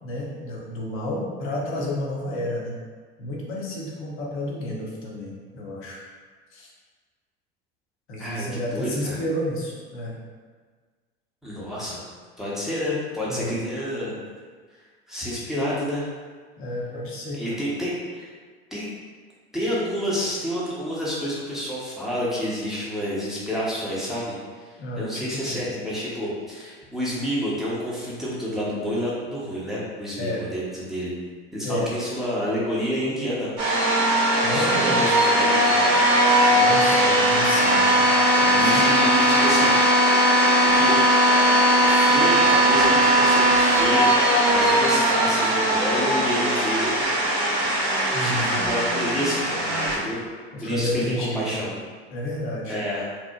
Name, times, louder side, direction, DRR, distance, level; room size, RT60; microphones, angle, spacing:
voice 1, 0.0-2.8 3.2-6.0 6.5-6.7 8.1-10.1 13.3-13.6 16.6-17.6 24.8-25.7 30.1-30.5 31.6-31.9 34.4-35.0 36.5-38.1 38.4-38.8 48.1-48.7 50.5-51.7 52.1-52.8, left 1 dB, 40° left, -3 dB, 0.7 m, -31 dB
voice 2, 8.2-9.2 11.4-12.0 12.4-14.2 15.1-16.1 17.3-18.3 18.7-18.9 19.5-24.4 25.0-31.1 31.5-33.5 34.5-35.8 36.3-36.5 38.6-39.7 40.6-41.0 41.8-44.1 44.5-46.9 48.2-50.2 50.6-51.8 52.7-53.0, equal, ahead, -8 dB, 0.7 m, -29 dB
sound 1, 33.6-50.0, right 1 dB, 65° right, 0.8 m, -19 dB
2.9 x 2.0 x 2.2 m, 1.5 s
figure-of-eight pair, 70°, 33 cm